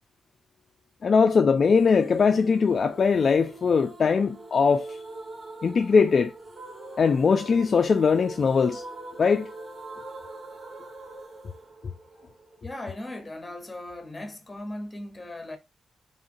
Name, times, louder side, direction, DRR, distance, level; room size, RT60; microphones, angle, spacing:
voice 1, 1.0-5.0 5.6-6.3 7.0-8.8 9.2-9.5, left 5 dB, 40° left, 0.3 m, -21 dB
sound 1, 1.7-12.7, right 2 dB, 30° right, 1.2 m, -43 dB
voice 2, 12.6-15.6, left 1 dB, 15° left, 0.9 m, -38 dB
3.8 x 3.5 x 2.6 m
wide cardioid pair, 175°, 0 cm